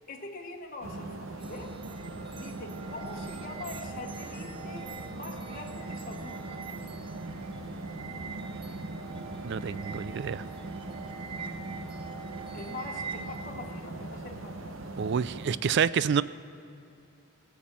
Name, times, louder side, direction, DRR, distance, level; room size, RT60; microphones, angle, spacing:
voice 1, 0.1-1.8 2.3-6.6 12.5-15.0, left 2 dB, 45° left, 1 dB, 1.2 m, -43 dB
sound 1, 0.8-15.6, right 2 dB, 80° right, 0.9 m, -40 dB
sound 2, 1.4-13.5, right 6 dB, 25° right, 0.7 m, -45 dB
voice 2, 9.4-10.4 15.0-16.2, right 7 dB, 55° right, 18 dB, 0.4 m, -28 dB
18.0 x 7.2 x 7.4 m, 2.6 s
head